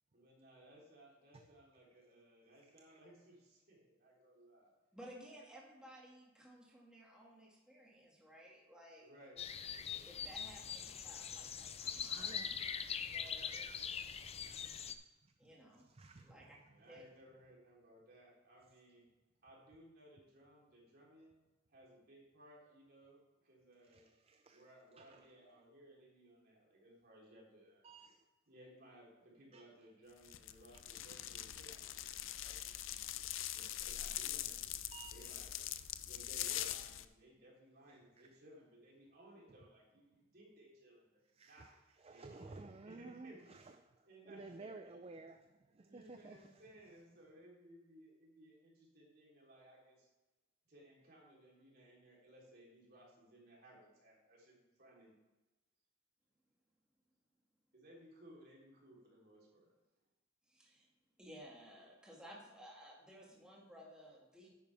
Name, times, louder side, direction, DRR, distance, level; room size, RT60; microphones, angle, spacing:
voice 1, 0.1-4.7 9.0-9.4 16.7-19.1 19.4-21.3 21.7-24.0 24.5-27.9 28.5-33.1 33.5-34.8 35.1-35.5 36.1-41.7 42.1-42.6 42.8-43.6 44.0-44.7 45.8-50.1 50.7-55.1 57.7-59.7, right 1 dB, 55° right, -4 dB, 3.5 m, -61 dB
voice 2, 4.9-9.1 9.7-12.7 13.1-13.7 15.4-15.9 16.2-16.6 16.9-17.0 60.5-60.9 61.2-64.5, equal, 5° right, -4 dB, 2.1 m, -57 dB
sound 1, 9.4-14.9, left 7 dB, 30° left, 0.5 m, -43 dB
voice 3, 12.2-12.5 13.9-14.0 14.4-14.6 15.9-16.5 23.8-25.3 27.8-28.2 29.5-29.6 32.3-32.4 34.9-35.7 41.3-41.7 42.0-43.8 44.3-45.4 45.7-46.5, right 3 dB, 30° right, 7 dB, 0.4 m, -54 dB
sound 2, 30.2-37.1, left 12 dB, 85° left, 0.5 m, -43 dB
10.0 x 9.1 x 3.4 m, 1.1 s
head